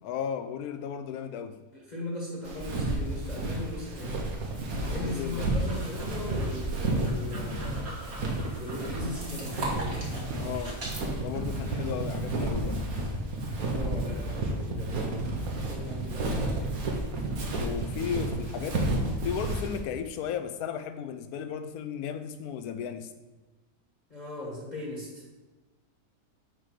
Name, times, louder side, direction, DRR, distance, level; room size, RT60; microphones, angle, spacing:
voice 1, 0.0-1.6 4.7-5.5 10.4-10.8 11.2-12.8 17.6-18.8 19.2-23.1, left 8 dB, 80° left, 9 dB, 1.1 m, -35 dB
voice 2, 1.7-4.2 4.8-7.9 8.5-10.0 13.7-15.2 15.5-16.8 24.1-25.2, left 1 dB, 30° left, -4 dB, 1.5 m, -38 dB
Walk footsteps, 2.5-19.8, right 2 dB, 70° right, 1.5 m, -31 dB
sound 1, 5.3-11.0, right 2 dB, 45° right, 1.7 m, -41 dB
4.9 x 4.9 x 5.9 m, 1.2 s
omnidirectional pair, 1.6 m